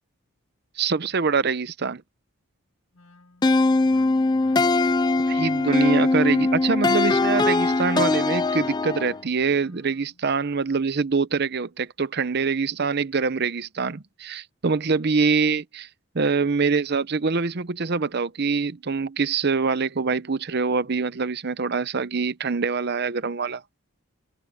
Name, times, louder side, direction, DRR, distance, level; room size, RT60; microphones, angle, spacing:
voice 1, 0.8-2.0 5.3-15.9 16.1-23.6, right 4 dB, 50° right, 0.7 m, -24 dB
Wind instrument woodwind instrument, 2.9-10.3, left 2 dB, 65° left, 2.3 m, -51 dB
sound 1, 3.4-9.2, left 2 dB, 20° left, 0.4 m, -21 dB
head